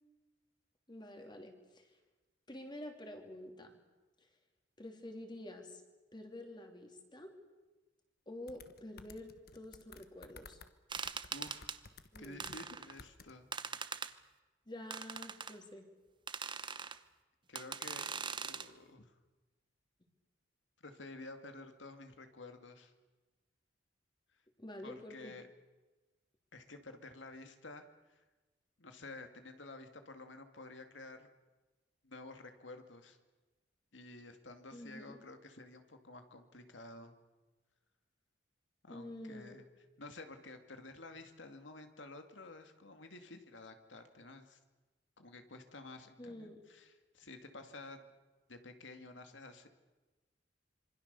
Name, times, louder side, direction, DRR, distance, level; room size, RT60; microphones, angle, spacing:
voice 1, 0.9-1.9 2.5-3.7 4.8-5.8 6.1-7.3 8.3-10.6 12.1-12.6 14.7-15.9 24.6-25.4 34.7-35.2 38.9-39.6 46.2-46.6, left 1 dB, 25° left, 4 dB, 3.0 m, -48 dB
sound 1, 8.5-10.7 10.9-12.6 13.0-13.3, left 4 dB, 55° left, 1.3 m, -55 dB
sound 2, 10.9-11.8 12.4-13.0 13.5-14.1 14.9-15.5 16.3-17.0 17.5-18.7, right 6 dB, 25° right, 0.8 m, -41 dB
voice 2, 11.3-11.7 12.2-13.5 16.3-16.7 17.5-18.1 18.4-19.2 20.8-22.9 24.8-25.5 26.5-28.3 28.8-31.3 32.0-33.2 33.9-37.1 38.8-39.7 40.0-44.6 45.2-48.1 48.5-49.7, left 2 dB, 80° left, 7 dB, 2.2 m, -51 dB
26.5 x 24.5 x 6.8 m, 1.2 s
head